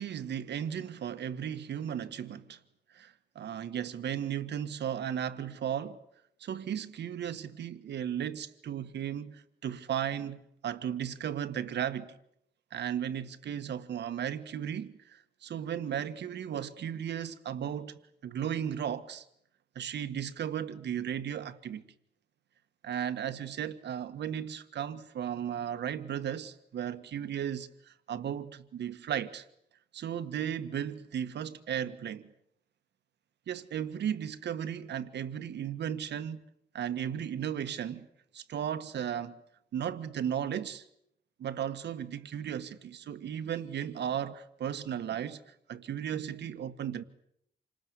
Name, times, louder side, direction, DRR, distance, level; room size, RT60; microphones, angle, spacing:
voice 1, 0.0-2.6 2.9-6.0 6.4-12.1 12.7-19.2 19.7-21.8 22.8-29.5 29.9-32.3 33.5-36.4 36.7-38.1 38.3-39.4 39.7-40.8 41.4-47.0, right 9 dB, 70° right, 1.7 m, -35 dB
28.0 x 20.0 x 9.7 m
wide cardioid pair, 160°, 18 cm